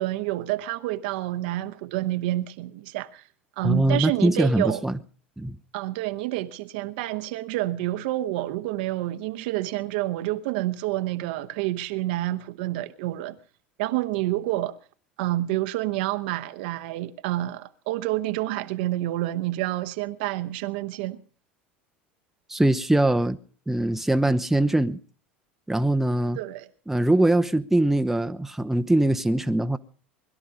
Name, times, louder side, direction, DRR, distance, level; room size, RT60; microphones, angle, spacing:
voice 1, 0.0-3.2 3.6-4.8 5.7-13.4 13.8-14.8 15.2-21.2 26.4-26.7, right 16 dB, 60° right, 1.0 m, -28 dB
voice 2, 3.6-5.0 5.4-5.6 22.5-23.4 23.7-25.0 25.7-26.4 26.9-29.8, right 1 dB, 5° right, 0.8 m, -22 dB
21.0 x 12.5 x 5.2 m
figure-of-eight pair, 75°, 6 cm